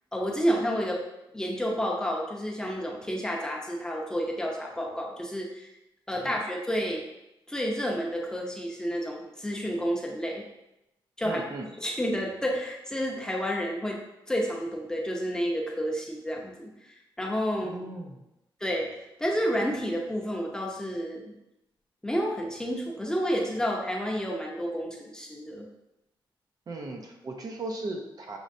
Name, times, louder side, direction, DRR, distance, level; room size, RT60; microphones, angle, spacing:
voice 1, 0.1-1.0 1.3-5.7 6.1-7.0 7.5-10.4 11.2-11.4 11.8-14.0 14.3-17.9 18.6-18.9 19.2-21.3 22.0-25.7, equal, 10° left, -2 dB, 0.7 m, -30 dB
voice 2, 11.2-11.7 17.6-18.2 26.7-28.4, right 2 dB, 45° right, 2 dB, 0.6 m, -37 dB
6.3 x 3.1 x 2.6 m, 0.92 s
wide cardioid pair, 130°, 9 cm